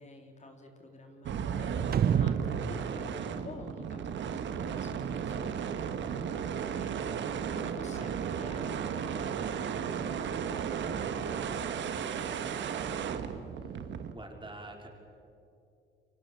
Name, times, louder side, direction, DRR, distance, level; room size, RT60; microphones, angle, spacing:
voice 1, 0.0-13.1, left 2 dB, 35° left, 3 dB, 3.7 m, -50 dB
sound 1, 1.2-14.1, right 7 dB, 70° right, 1.7 m, -34 dB
sound 2, 1.9-4.4, right 8 dB, 50° right, 0.9 m, -31 dB
voice 2, 13.6-14.9, right 2 dB, 25° right, 2 dB, 5.0 m, -47 dB
29.5 x 24.0 x 7.2 m, 2.6 s
cardioid pair, 90°, 20 cm